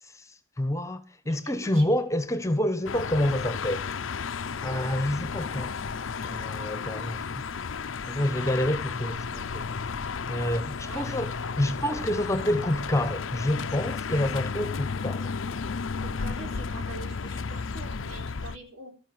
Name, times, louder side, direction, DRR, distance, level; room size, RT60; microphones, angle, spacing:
voice 1, 0.0-4.0 4.6-5.8 6.2-7.5 8.0-9.9 10.3-15.3, left 1 dB, 15° left, 1.2 m, -28 dB
voice 2, 1.2-1.9 10.7-11.7 16.0-18.9, right 3 dB, 85° right, 4.1 m, -45 dB
sound 1, 2.9-18.6, left 5 dB, 75° left, 0.6 m, -33 dB
13.5 x 10.5 x 6.2 m
head